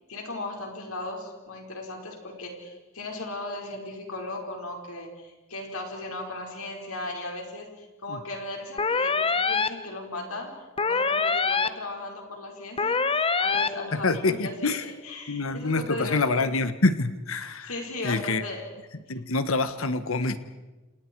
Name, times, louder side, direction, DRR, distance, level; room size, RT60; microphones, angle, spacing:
voice 1, 0.1-16.5 17.6-18.7, left 2 dB, 90° left, 1 dB, 5.2 m, -37 dB
sound 1, 8.8-9.7 10.8-11.7 12.8-13.7, left 4 dB, 25° left, 0.9 m, -24 dB
voice 2, 13.9-14.8 15.3-17.7 18.0-18.4 19.1-20.4, left 3 dB, 70° left, 11 dB, 1.3 m, -26 dB
30.0 x 28.5 x 4.7 m, 1.2 s
head